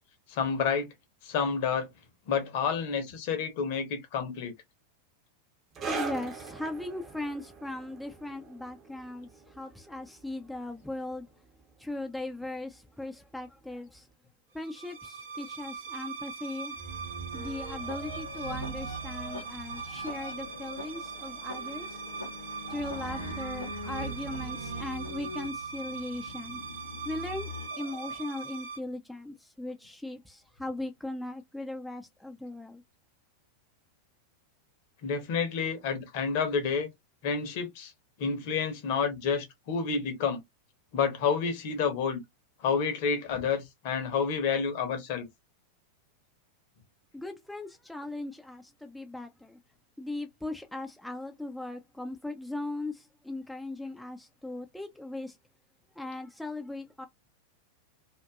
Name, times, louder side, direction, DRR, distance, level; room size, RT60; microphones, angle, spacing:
voice 1, 0.3-0.9 1.2-1.9 2.3-4.5 35.0-36.9 37.2-37.9 38.2-40.4 40.9-42.2 42.6-45.3, left 6 dB, 50° left, 0.8 m, -29 dB
sound 1, 5.7-12.7 13.0-13.2 14.0-14.1, right 4 dB, 25° right, 0.8 m, -42 dB
voice 2, 5.9-11.3 11.8-14.1 14.5-16.9 17.3-22.0 22.7-26.6 27.1-27.5 27.8-32.8 43.3-43.4 47.1-49.6 50.0-55.4 56.0-57.1, left 2 dB, ahead, 0.4 m, -38 dB
sound 2, 14.6-28.8, right 5 dB, 60° right, 0.6 m, -40 dB
sound 3, 17.3-28.3, left 3 dB, 80° left, 0.7 m, -43 dB
2.5 x 2.4 x 2.2 m
figure-of-eight pair, 90°, 0 cm